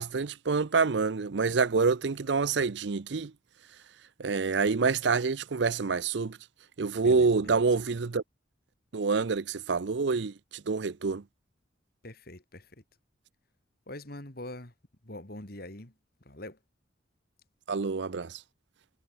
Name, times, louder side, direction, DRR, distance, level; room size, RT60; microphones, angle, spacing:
voice 1, 0.0-3.3 4.2-6.4 6.8-8.2 8.9-11.2 17.7-18.4, right 4 dB, 65° right, 0.6 m, -27 dB
voice 2, 7.0-7.6 12.0-12.8 13.9-14.7 15.0-16.6, left 1 dB, 50° left, 3.3 m, -43 dB
head